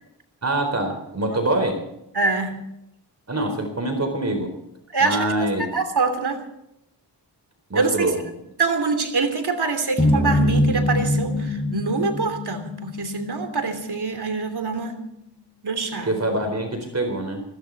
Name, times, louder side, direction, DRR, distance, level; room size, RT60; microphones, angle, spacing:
voice 1, 0.4-1.8 3.3-4.5 5.0-5.7 7.7-8.2 16.1-17.4, right 1 dB, 40° right, 4 dB, 4.2 m, -24 dB
voice 2, 2.1-2.6 4.9-6.5 7.7-8.1 8.6-15.0 15.6-16.2, right 4 dB, 65° right, 6 dB, 3.1 m, -25 dB
sound 1, 10.0-14.4, left 1 dB, 25° left, 7.3 m, -24 dB
20.5 x 16.5 x 4.1 m, 0.81 s
wide cardioid pair, 90°, 42 cm